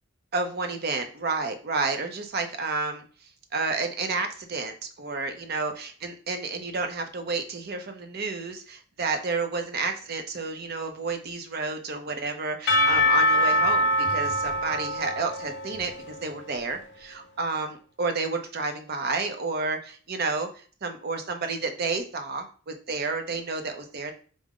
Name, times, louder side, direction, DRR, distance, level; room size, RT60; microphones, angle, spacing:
voice 1, 0.3-3.0 3.5-20.5 20.8-24.1, right 3 dB, 45° right, 6 dB, 0.5 m, -30 dB
Percussion / Church bell, 12.7-16.6, left 1 dB, 55° left, 0.5 m, -24 dB
4.7 x 2.0 x 3.6 m, 0.41 s
head